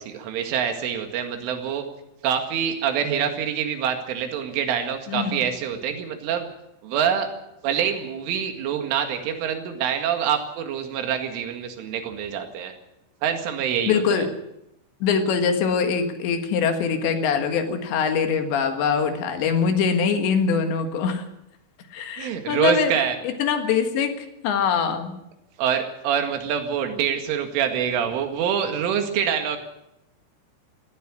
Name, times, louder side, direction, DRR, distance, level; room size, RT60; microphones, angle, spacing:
voice 1, 0.0-1.8 2.2-6.5 6.8-7.3 7.6-12.7 13.2-14.3 22.2-23.2 25.6-29.6, right 8 dB, 85° right, 5 dB, 4.5 m, -25 dB
voice 2, 5.1-5.5 13.9-14.3 15.0-21.3 21.9-22.9 23.2-25.1, left 6 dB, 70° left, 7 dB, 3.8 m, -23 dB
18.0 x 15.0 x 9.9 m, 0.86 s
omnidirectional pair, 5.6 m